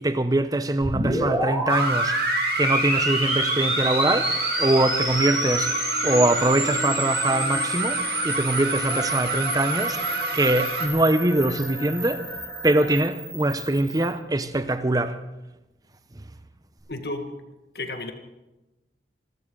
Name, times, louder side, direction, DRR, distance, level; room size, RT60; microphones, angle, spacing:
voice 1, 0.0-2.3 2.6-5.8 6.0-15.2 16.1-16.2, right 2 dB, 20° right, 0.7 m, -23 dB
sound 1, 0.8-14.1, equal, 5° right, 6.0 m, -29 dB
sound 2, 1.7-10.9, right 3 dB, 60° right, 2.4 m, -29 dB
sound 3, 3.8-13.1, left 1 dB, 15° left, 2.5 m, -40 dB
voice 2, 16.9-17.3 17.7-18.1, left 2 dB, 60° left, 1.7 m, -32 dB
26.5 x 13.5 x 3.9 m
head